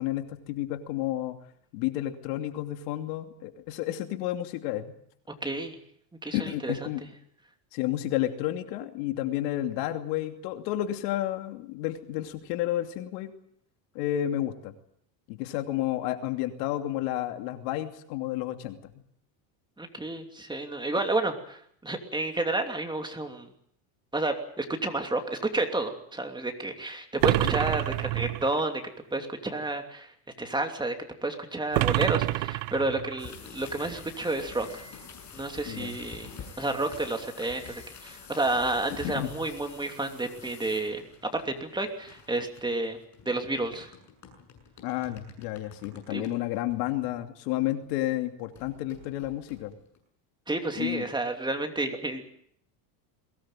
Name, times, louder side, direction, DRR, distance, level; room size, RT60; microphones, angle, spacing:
voice 1, 0.0-1.4 1.7-4.9 6.3-7.0 7.7-13.3 13.9-14.7 15.3-19.0 27.3-27.5 35.7-36.0 39.0-39.3 44.8-49.8 50.8-51.0, left 14 dB, 80° left, 6 dB, 2.9 m, -31 dB
voice 2, 5.4-5.8 6.2-6.7 19.8-23.5 24.1-28.8 29.1-30.1 30.4-30.9 31.2-34.8 35.3-36.3 36.6-41.0 41.3-43.0 43.3-43.9 46.1-46.3 50.5-52.2, right 2 dB, 10° right, 5 dB, 2.9 m, -30 dB
sound 1, 27.2-28.7 31.7-33.3, right 21 dB, 75° right, 0.9 m, -27 dB
sound 2, 33.2-48.0 48.5-50.0, left 6 dB, 35° left, 7.5 m, -48 dB
22.5 x 18.5 x 9.1 m, 0.67 s
cardioid pair, 135°, 49 cm